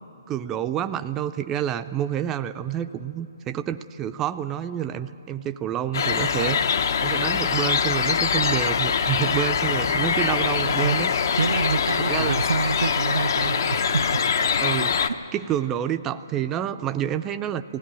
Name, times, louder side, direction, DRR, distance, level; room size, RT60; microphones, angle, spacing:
voice 1, 0.3-11.1 12.1-12.4 14.6-15.1 15.3-17.6, right 10 dB, 20° right, 9 dB, 0.4 m, -28 dB
sound 1, 5.9-15.1, left 6 dB, 60° left, 0.8 m, -23 dB
voice 2, 11.4-14.2 15.1-15.2, right 5 dB, 70° right, 11 dB, 0.5 m, -27 dB
18.5 x 16.5 x 9.0 m, 2.8 s
hypercardioid pair, 145°, 2 cm